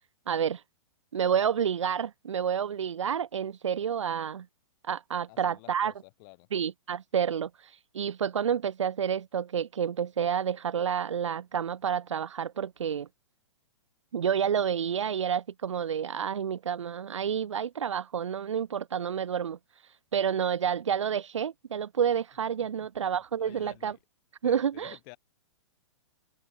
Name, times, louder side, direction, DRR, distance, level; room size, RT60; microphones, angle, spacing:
voice 1, 0.3-0.6 1.1-4.5 4.8-5.9 6.5-13.1 14.1-24.0 24.4-25.0, right 8 dB, 85° right, 0.8 m, -29 dB
voice 2, 5.3-6.5 22.8-22.9 23.4-24.0 24.4-25.2, left 32 dB, 40° left, 6.0 m, -51 dB
hypercardioid pair, 130°, 15 cm